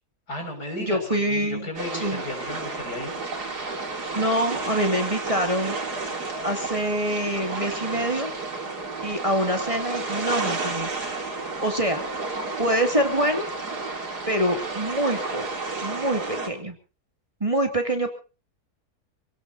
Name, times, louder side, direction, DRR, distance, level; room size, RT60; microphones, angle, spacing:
voice 1, 0.3-3.2, left 1 dB, 80° left, 3 dB, 6.7 m, -34 dB
voice 2, 0.8-2.2 4.1-5.8 6.4-8.4 9.0-11.0 11.6-12.0 12.6-13.5 14.3-15.4 15.8-16.7 17.4-18.1, right 1 dB, 20° right, 4 dB, 2.6 m, -25 dB
sound 1, 1.8-16.5, right 3 dB, 75° right, 3.7 m, -31 dB
26.5 x 17.0 x 2.8 m, 0.35 s
omnidirectional pair, 1.7 m